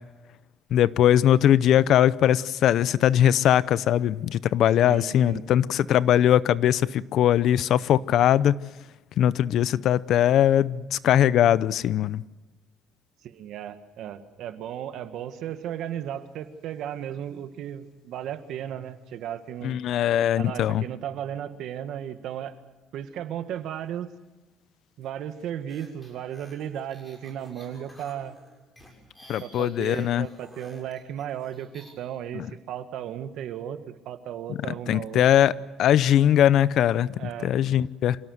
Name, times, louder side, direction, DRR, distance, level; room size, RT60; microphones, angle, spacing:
voice 1, 0.7-8.6 9.2-12.2 19.6-20.8 29.3-30.3 32.3-32.5 34.5-34.6 34.9-35.5 35.8-38.2, left 11 dB, 65° left, 0.7 m, -21 dB
voice 2, 4.8-5.4 13.2-19.8 20.4-22.5 22.9-24.1 25.0-28.3 29.4-33.8 34.0-35.3 37.2-37.5, right 10 dB, 70° right, 1.7 m, -35 dB
sound 1, 25.7-31.9, equal, 10° left, 6.9 m, -51 dB
27.0 x 17.5 x 8.0 m
cardioid pair, 130°, 0 cm